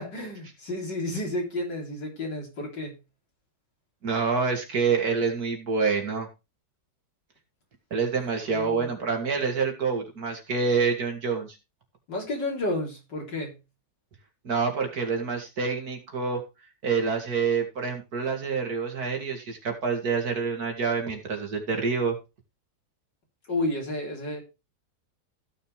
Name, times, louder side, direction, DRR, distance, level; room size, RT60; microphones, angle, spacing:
voice 1, 0.0-2.9 8.5-8.9 12.1-13.5 23.5-24.4, left 1 dB, 80° left, 0 dB, 4.4 m, -31 dB
voice 2, 4.0-6.3 7.9-11.6 14.4-16.4 16.8-22.2, right 5 dB, 60° right, 4 dB, 2.7 m, -27 dB
15.0 x 6.6 x 3.3 m, 0.27 s
omnidirectional pair, 1.9 m